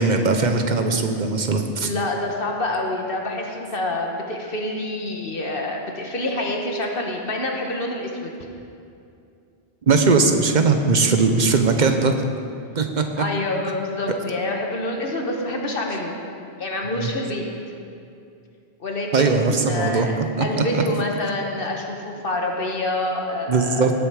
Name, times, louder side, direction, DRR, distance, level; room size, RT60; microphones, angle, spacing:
voice 1, 0.0-1.9 8.1-8.2 9.9-12.1 12.7-13.0 17.0-17.1 19.1-20.5 20.7-20.8 23.5-23.9, right 4 dB, 50° right, 5 dB, 1.0 m, -19 dB
voice 2, 1.8-8.3 13.2-16.1 16.6-17.4 18.8-23.8, left 1 dB, 65° left, 1 dB, 1.4 m, -27 dB
18.0 x 6.9 x 4.9 m, 2.5 s
omnidirectional pair, 1.0 m